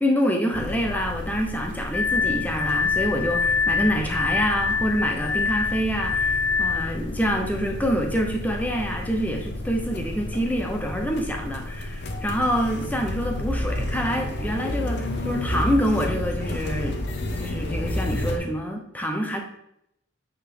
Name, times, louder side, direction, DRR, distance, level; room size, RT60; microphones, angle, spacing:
voice 1, 0.0-17.0 17.4-19.4, equal, 10° left, 2 dB, 0.9 m, -26 dB
sound 1, 0.5-18.4, left 1 dB, 60° left, 0.9 m, -31 dB
Glass, 1.9-7.0, left 5 dB, 90° left, 0.4 m, -25 dB
8.5 x 4.1 x 3.8 m, 0.76 s
head